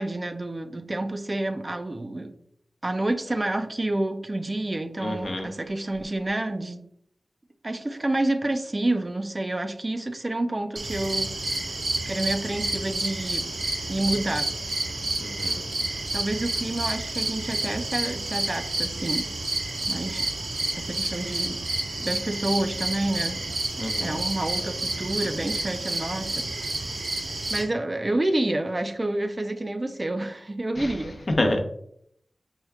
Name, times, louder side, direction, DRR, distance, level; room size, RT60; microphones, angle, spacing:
voice 1, 0.0-2.3 2.8-6.9 7.6-11.3 12.1-13.5 13.9-14.6 16.1-19.3 19.9-20.3 20.8-21.6 22.0-23.5 24.0-26.5 27.5-31.2, right 1 dB, 35° right, 8 dB, 0.4 m, -29 dB
voice 2, 5.0-5.5 15.2-15.6 23.8-24.2 30.8-30.9 31.4-31.6, left 1 dB, 55° left, 3 dB, 0.7 m, -28 dB
sound 1, 10.8-27.6, right 2 dB, 80° right, 0.8 m, -30 dB
4.5 x 2.2 x 3.4 m, 0.70 s
cardioid pair, 45°, 0 cm